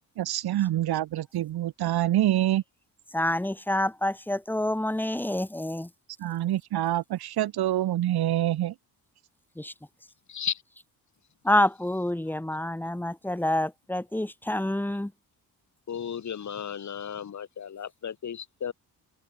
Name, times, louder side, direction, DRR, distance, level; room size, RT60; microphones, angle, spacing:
voice 1, 0.2-2.6 6.2-8.7, right 13 dB, 85° right, 2.3 m, -26 dB
voice 2, 3.1-5.9 9.6-9.7 11.4-15.1, left 1 dB, 5° left, 4.1 m, -27 dB
voice 3, 10.3-10.6 15.9-18.7, left 8 dB, 50° left, 5.9 m, -34 dB
open air
cardioid pair, 145°, 37 cm